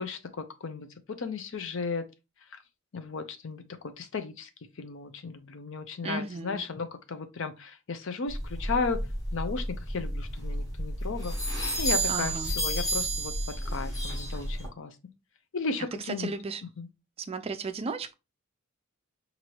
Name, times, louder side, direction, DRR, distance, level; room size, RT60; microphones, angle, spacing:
voice 1, 0.0-2.0 2.5-2.6 2.9-4.5 4.8-9.0 9.3-11.3 11.8-13.3 13.7-15.0 15.5-16.3 16.8-16.9, left 4 dB, 60° left, 0.5 m, -35 dB
voice 2, 6.0-6.6 12.1-12.5 16.1-16.6 17.3-18.1, right 4 dB, 25° right, 0.3 m, -34 dB
sound 1, 8.3-14.7, right 1 dB, 15° left, 1.1 m, -31 dB
4.5 x 2.6 x 2.9 m
head